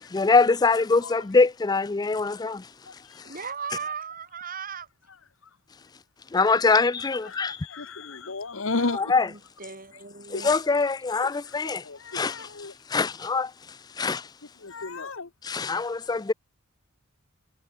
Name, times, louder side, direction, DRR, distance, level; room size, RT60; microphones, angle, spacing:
voice 1, 0.1-2.7 3.3-3.4 6.3-7.6 8.9-9.3 10.3-11.8 12.1-13.5 14.0-14.3 15.4-16.3, left 4 dB, 15° left, 0.3 m, -23 dB
voice 2, 3.2-4.9 8.8-10.5, right 6 dB, 40° right, 2.8 m, -37 dB
voice 3, 7.4-9.0 10.3-10.5 11.9-12.7 14.6-15.3, left 3 dB, 60° left, 1.2 m, -32 dB
head